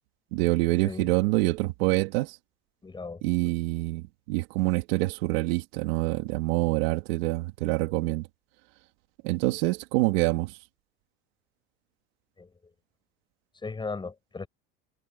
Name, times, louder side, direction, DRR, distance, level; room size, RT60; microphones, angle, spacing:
voice 1, 0.3-2.3 3.2-8.3 9.2-10.5, right 21 dB, 85° right, 2.6 m, -26 dB
voice 2, 2.8-3.5 12.4-12.5 13.6-14.5, left 4 dB, 15° left, 8.0 m, -37 dB
supercardioid pair, 125°, 29 cm